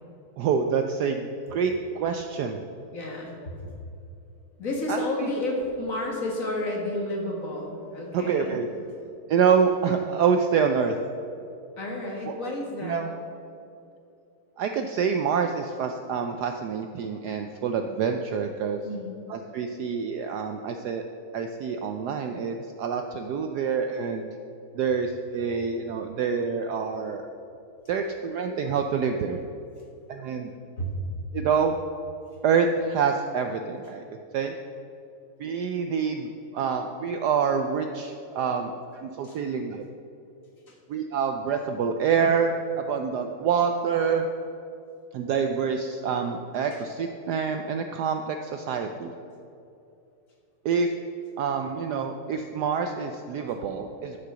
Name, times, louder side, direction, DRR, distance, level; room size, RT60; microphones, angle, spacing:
voice 1, 0.4-2.6 4.9-5.3 8.1-8.7 9.3-11.0 12.3-12.4 12.8-13.1 14.6-18.8 19.3-21.0 21.3-24.2 24.7-27.3 27.9-29.4 30.1-30.5 31.3-31.7 32.4-34.0 34.3-34.5 35.4-39.8 40.9-44.3 45.1-49.1 50.6-50.9 51.4-54.2, right 6 dB, 80° right, 5 dB, 0.9 m, -26 dB
voice 2, 2.9-3.3 3.6-3.7 4.6-8.9 11.8-13.0 18.8-19.2 30.8-30.9 39.2-39.4 40.7-40.8, left 1 dB, 40° left, -1 dB, 1.9 m, -31 dB
11.5 x 5.9 x 6.7 m, 2.7 s
omnidirectional pair, 2.3 m